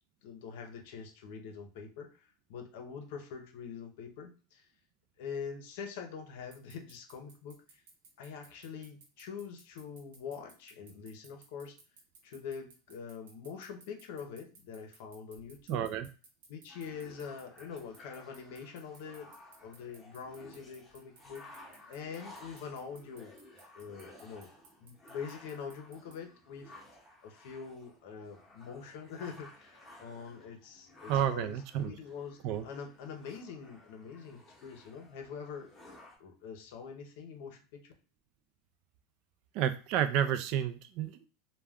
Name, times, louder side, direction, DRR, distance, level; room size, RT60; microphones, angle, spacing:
voice 1, 0.2-4.7 5.2-7.8 8.2-11.8 12.2-15.9 16.5-19.3 19.6-21.4 21.9-23.3 23.7-24.5 24.8-26.7 27.2-32.4 32.6-35.7 36.2-37.9, left 6 dB, 70° left, 5 dB, 0.6 m, -44 dB
sound 1, 6.5-26.1, right 4 dB, 85° right, 0.9 m, -57 dB
voice 2, 15.7-16.1 31.1-31.9 32.4-32.7 39.5-41.3, right 10 dB, 50° right, 10 dB, 0.3 m, -30 dB
sound 2, 16.7-36.2, left 1 dB, 10° left, 0.8 m, -56 dB
2.3 x 2.2 x 3.4 m, 0.35 s
supercardioid pair, 140°, 0 cm